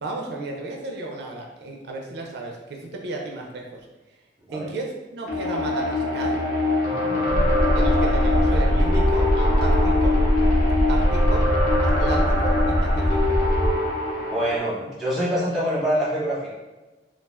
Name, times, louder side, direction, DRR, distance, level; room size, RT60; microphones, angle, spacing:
voice 1, 0.0-3.8 4.5-6.4 7.7-10.2 10.9-11.5 11.8-13.4, right 2 dB, 65° right, 1 dB, 0.4 m, -33 dB
sound 1, 5.3-14.6, left 2 dB, 60° left, 0.8 m, -24 dB
voice 2, 6.8-7.4 14.2-16.5, equal, ahead, -7 dB, 0.8 m, -26 dB
sound 2, 7.3-13.7, equal, 40° left, 0.4 m, -21 dB
2.3 x 2.2 x 3.3 m, 1.2 s
head